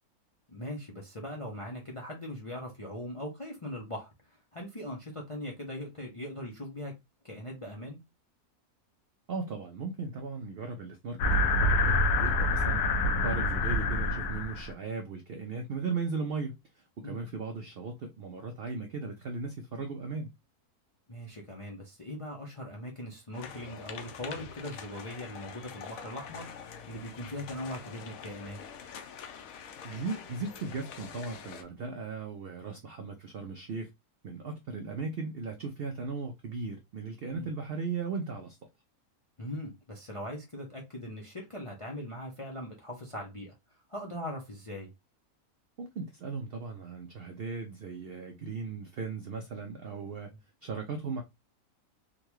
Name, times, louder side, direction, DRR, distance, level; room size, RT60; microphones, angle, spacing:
voice 1, 0.5-4.1 4.5-6.9 7.2-8.0 17.0-17.2 21.1-28.6 37.3-37.5 39.4-43.5 43.9-44.9, left 1 dB, 35° left, 0.5 m, -40 dB
voice 2, 9.3-12.9 13.2-16.6 17.0-20.3 29.8-33.9 34.2-38.6 45.8-50.3 50.6-51.2, right 4 dB, 75° right, 0.5 m, -37 dB
sound 1, 11.2-14.7, left 2 dB, 90° left, 1.2 m, -26 dB
sound 2, 23.3-31.6, left 7 dB, 70° left, 1.0 m, -45 dB
3.7 x 2.2 x 3.0 m
omnidirectional pair, 1.6 m